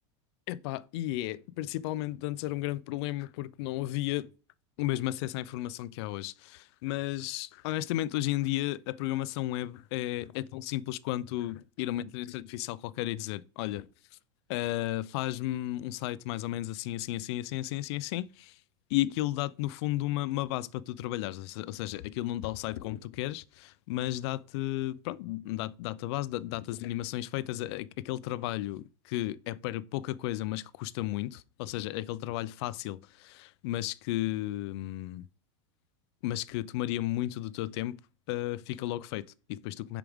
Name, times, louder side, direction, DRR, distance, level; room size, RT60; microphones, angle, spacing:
voice 1, 0.5-4.3 4.8-13.9 14.5-18.6 18.9-35.3 36.2-38.0 38.3-40.0, left 15 dB, 60° left, 0.4 m, -33 dB
7.0 x 4.7 x 3.5 m
supercardioid pair, 145°, 16 cm